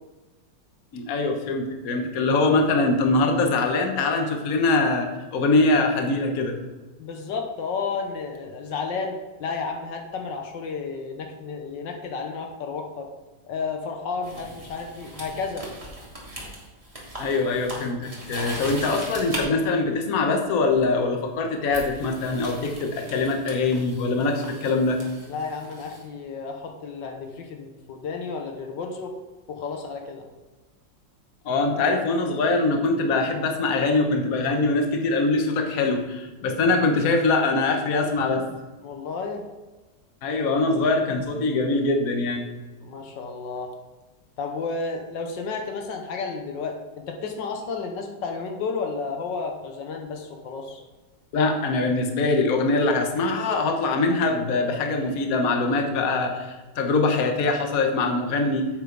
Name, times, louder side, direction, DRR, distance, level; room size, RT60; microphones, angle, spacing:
voice 1, 0.9-6.6 17.2-25.0 31.4-38.5 40.2-42.5 51.3-58.7, left 3 dB, 55° left, 4 dB, 1.4 m, -23 dB
voice 2, 7.0-13.1 13.5-15.7 25.3-29.1 29.5-30.2 38.8-39.4 42.8-43.7 44.4-50.8, left 4 dB, 80° left, 4 dB, 1.6 m, -32 dB
sound 1, 14.2-19.4 20.7-20.9 21.7-26.0, right 1 dB, 20° right, 2.3 m, -39 dB
9.2 x 8.4 x 3.9 m, 1.2 s
omnidirectional pair, 2.0 m